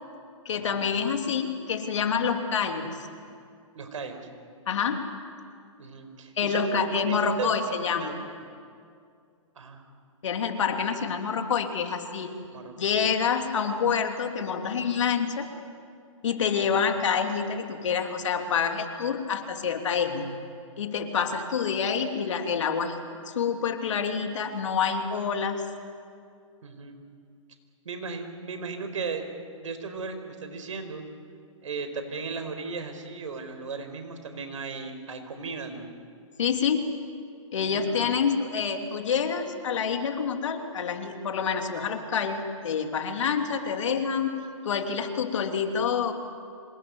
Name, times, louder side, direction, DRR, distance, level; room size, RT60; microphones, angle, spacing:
voice 1, 0.4-3.0 4.7-5.1 6.4-8.1 10.2-12.4 12.8-15.5 16.2-20.4 20.8-23.0 23.3-25.6 36.4-37.0 37.5-46.1, left 6 dB, 65° left, 5 dB, 3.1 m, -27 dB
voice 2, 3.7-4.2 5.8-8.2 9.5-9.8 12.5-12.7 16.6-16.8 26.6-27.0 27.8-29.3 29.5-31.1 31.6-35.9 37.6-37.9, right 4 dB, 75° right, 7 dB, 4.6 m, -36 dB
26.0 x 20.5 x 9.6 m, 2.3 s
hypercardioid pair, 145°, 17 cm